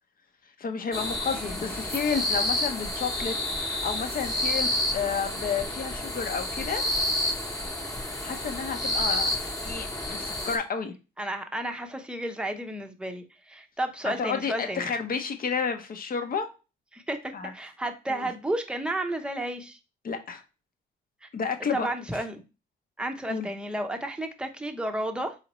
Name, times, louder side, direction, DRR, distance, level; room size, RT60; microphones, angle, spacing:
voice 1, 0.6-6.8 8.2-9.3 9.6-10.9 14.0-16.5 17.3-17.5 18.1-18.3 20.0-20.4 21.3-21.9 22.1-22.2 23.3-23.5, left 6 dB, 45° left, 0.8 m, -31 dB
sound 1, 0.9-10.6, left 1 dB, 15° left, 1.0 m, -30 dB
voice 2, 11.2-14.9 16.9-19.8 21.2-21.3 21.7-22.4 23.0-25.3, right 1 dB, 5° right, 0.7 m, -32 dB
4.1 x 3.9 x 3.0 m
cardioid pair, 90°, 20 cm